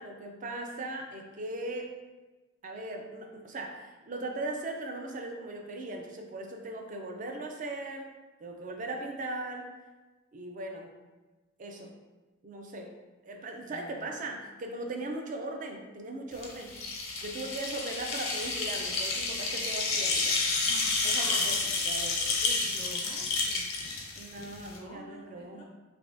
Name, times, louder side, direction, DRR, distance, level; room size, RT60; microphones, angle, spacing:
voice 1, 0.0-2.0 2.6-8.1 8.4-9.7 10.3-10.9 11.6-11.9 12.4-12.9 13.2-16.8 17.2-20.4 21.0-22.4 24.2-25.6, right 2 dB, 40° right, 3 dB, 0.4 m, -39 dB
sound 1, 16.3-24.8, left 3 dB, 85° left, 0.6 m, -30 dB
voice 2, 20.4-22.0 22.4-23.7 24.7-25.6, equal, 25° left, -3 dB, 0.4 m, -48 dB
3.4 x 3.2 x 2.6 m, 1.2 s
head